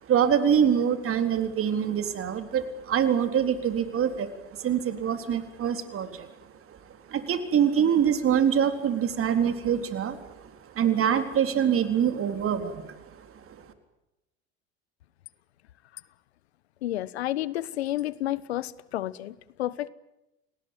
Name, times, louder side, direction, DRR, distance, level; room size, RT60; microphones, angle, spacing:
voice 1, 0.0-6.3 6.7-6.8 7.1-13.6, right 8 dB, 45° right, 9 dB, 3.8 m, -25 dB
voice 2, 16.8-19.9, left 14 dB, 85° left, 20 dB, 1.1 m, -31 dB
28.5 x 19.5 x 9.0 m, 0.92 s
hypercardioid pair, 75°, 31 cm